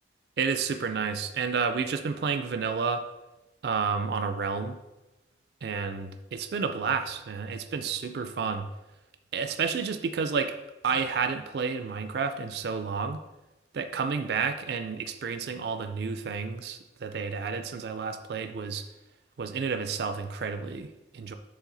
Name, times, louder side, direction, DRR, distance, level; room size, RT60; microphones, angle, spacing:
voice 1, 0.4-3.0 3.6-4.8 5.6-8.7 9.3-10.5 10.8-13.2 13.7-18.8 19.4-21.3, right 5 dB, 55° right, 8 dB, 0.3 m, -30 dB
7.3 x 3.5 x 3.9 m, 1.0 s
head